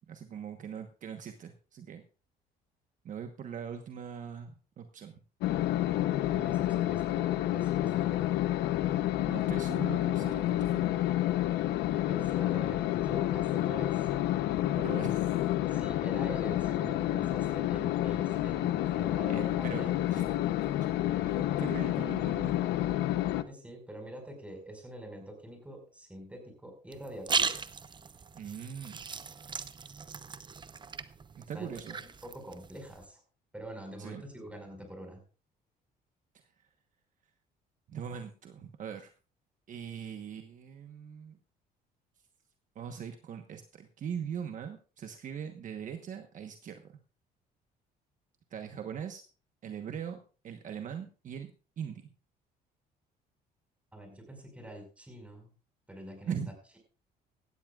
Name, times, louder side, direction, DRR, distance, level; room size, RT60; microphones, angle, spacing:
voice 1, 0.1-2.0 3.0-5.2 9.3-10.9 14.8-15.3 19.3-19.9 20.1-20.2 20.6-20.7 21.2-22.5 28.3-29.1 31.4-32.0 34.0-34.2 37.9-39.1 39.7-41.4 42.7-46.8 48.5-49.2 49.6-50.2 50.4-52.0 56.3-56.5, right 7 dB, 50° right, 6 dB, 1.2 m, -41 dB
sound 1, 5.4-23.4, left 14 dB, 85° left, 0.8 m, -29 dB
voice 2, 6.3-8.3 12.1-14.1 15.7-20.0 23.5-27.6 31.5-33.2 33.5-35.2 53.9-55.5 55.9-56.4, right 1 dB, 5° right, 4 dB, 5.2 m, -45 dB
sound 2, 26.9-33.0, right 5 dB, 25° right, 0.7 m, -37 dB
17.0 x 13.0 x 2.4 m, 0.35 s
cardioid pair, 110°, 17 cm